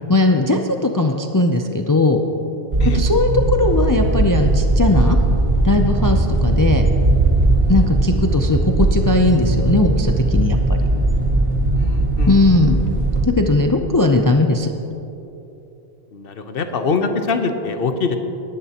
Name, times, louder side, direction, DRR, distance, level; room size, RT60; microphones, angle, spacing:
voice 1, 0.1-2.2 2.9-5.2 5.6-6.9 7.7-10.8 12.3-12.8 13.2-14.7, left 2 dB, 30° left, 4 dB, 0.4 m, -18 dB
sound 1, 2.7-13.3, right 2 dB, 30° right, 1.0 m, -18 dB
voice 2, 11.7-12.4 16.1-18.2, left 4 dB, 60° left, 7 dB, 1.1 m, -23 dB
19.5 x 11.0 x 2.9 m, 2.9 s
omnidirectional pair, 1.1 m